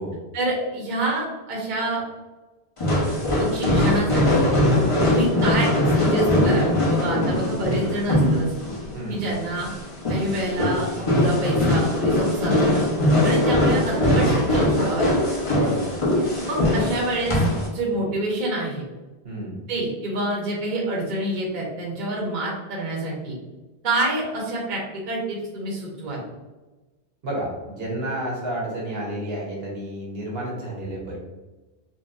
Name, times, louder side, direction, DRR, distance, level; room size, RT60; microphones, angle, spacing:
voice 1, 0.3-2.0 3.4-4.6 5.1-8.5 9.1-9.7 10.1-10.8 11.1-12.9 13.2-15.1 16.4-17.4 17.7-18.8 19.7-23.4 23.8-26.2, right 1 dB, 50° right, -4 dB, 0.9 m, -27 dB
sound 1, 2.8-17.7, left 1 dB, 35° left, 0.8 m, -21 dB
voice 2, 4.7-5.1 8.9-9.3 15.5-15.9 19.2-19.6 27.2-31.2, right 1 dB, 65° right, -3 dB, 1.1 m, -30 dB
4.0 x 2.0 x 2.4 m, 1.1 s
omnidirectional pair, 1.1 m